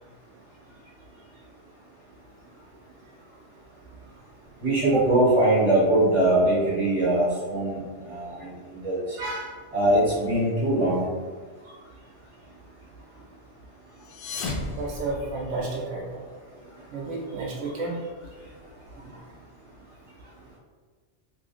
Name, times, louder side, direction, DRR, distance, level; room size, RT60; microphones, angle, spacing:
voice 1, 4.6-9.2 9.7-11.0, right 1 dB, 25° right, -9 dB, 1.3 m, -22 dB
voice 2, 9.2-9.6 14.7-16.2 16.9-18.0 19.0-19.1, right 3 dB, 80° right, -3 dB, 0.9 m, -30 dB
sound 1, 13.9-15.8, left 2 dB, 60° left, 0.6 m, -35 dB
3.0 x 2.5 x 2.5 m, 1.5 s
omnidirectional pair, 1.2 m